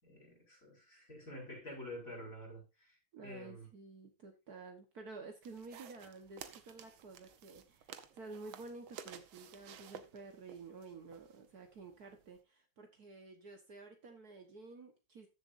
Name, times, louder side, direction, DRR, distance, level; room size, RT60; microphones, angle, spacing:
voice 1, 0.0-3.0 3.2-3.7, left 1 dB, 40° left, 5.8 m, -48 dB
voice 2, 3.1-15.3, right 3 dB, 55° right, 1.7 m, -51 dB
sound 1, 5.4-12.4, right 9 dB, 90° right, 1.7 m, -54 dB
14.0 x 7.2 x 2.6 m
omnidirectional pair, 2.2 m